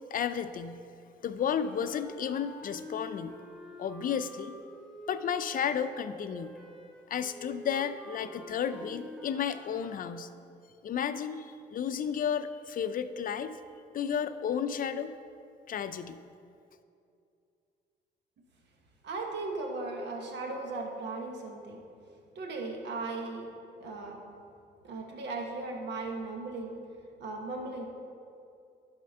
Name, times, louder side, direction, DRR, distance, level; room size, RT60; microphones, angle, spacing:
voice 1, 0.1-0.8 1.2-3.4 3.8-4.5 5.1-6.6 7.1-10.3 10.8-13.6 13.9-15.2 15.7-16.2, left 8 dB, 50° left, 11 dB, 0.5 m, -32 dB
sound 1, 1.4-10.1, left 1 dB, ahead, 1.4 m, -48 dB
voice 2, 19.0-21.8 22.3-23.4 23.8-24.2 24.8-26.7 27.2-27.9, right 3 dB, 70° right, 1 dB, 1.4 m, -37 dB
11.5 x 4.4 x 5.5 m, 2.5 s
cardioid pair, 95°, 19 cm